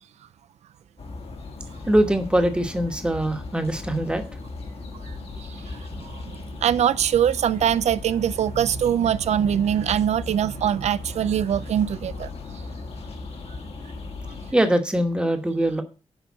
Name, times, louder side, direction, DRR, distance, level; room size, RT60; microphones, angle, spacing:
sound 1, 1.0-14.5, left 3 dB, 60° left, 1.6 m, -37 dB
voice 1, 1.9-4.2 14.5-15.8, right 1 dB, 10° right, 1.2 m, -22 dB
voice 2, 5.0-12.3, right 9 dB, 90° right, 0.4 m, -23 dB
7.2 x 5.2 x 7.3 m
wide cardioid pair, 150°, 11 cm